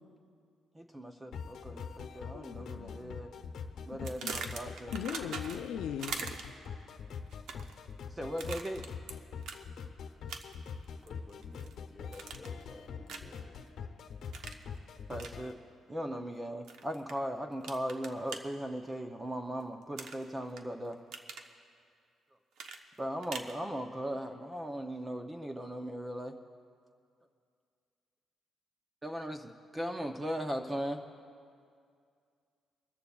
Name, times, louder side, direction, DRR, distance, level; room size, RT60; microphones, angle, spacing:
voice 1, 0.7-3.3 3.8-5.0 8.1-8.8 15.1-15.5 15.9-21.0 23.0-26.4 29.0-31.0, equal, 10° right, 5 dB, 0.5 m, -38 dB
sound 1, 1.3-15.5, left 6 dB, 65° left, 0.9 m, -44 dB
voice 2, 2.3-3.2 4.0-4.3 4.9-6.2, left 9 dB, 85° left, 8 dB, 0.5 m, -39 dB
sound 2, 4.0-5.7 6.0-6.7 7.3-7.8 8.4-9.1 9.4-9.6 10.3-10.7 11.1-11.7 12.1-12.6 13.1-13.4 14.3-14.6 15.2-15.3 16.7-17.1 17.6-18.4 20.0-20.6 20.9-21.5 22.6-23.5, right 5 dB, 80° right, 0.9 m, -42 dB
voice 3, 11.0-13.6, left 3 dB, 15° left, -1 dB, 1.6 m, -53 dB
24.5 x 14.0 x 2.3 m, 2.3 s
cardioid pair, 160°, 0 cm